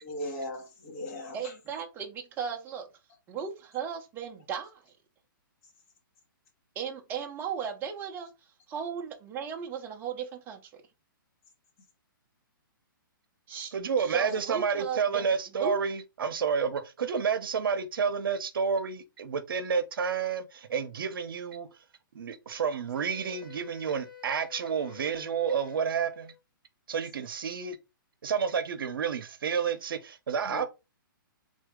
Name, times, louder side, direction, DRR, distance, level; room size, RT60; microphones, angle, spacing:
voice 1, 0.0-1.5 30.4-30.7, left 1 dB, 40° left, 1.5 m, -38 dB
voice 2, 1.3-2.9 3.3-4.9 6.8-8.3 8.7-10.7 13.5-13.7 14.0-15.3 15.6-15.8, right 7 dB, 15° right, 0.7 m, -36 dB
voice 3, 13.7-21.7 22.1-26.3 26.9-27.8 28.2-30.7, right 6 dB, 75° right, 0.8 m, -30 dB
Wind instrument woodwind instrument, 22.9-26.4, left 10 dB, 80° left, 1.6 m, -50 dB
3.6 x 2.7 x 3.6 m
hypercardioid pair, 150°, 12 cm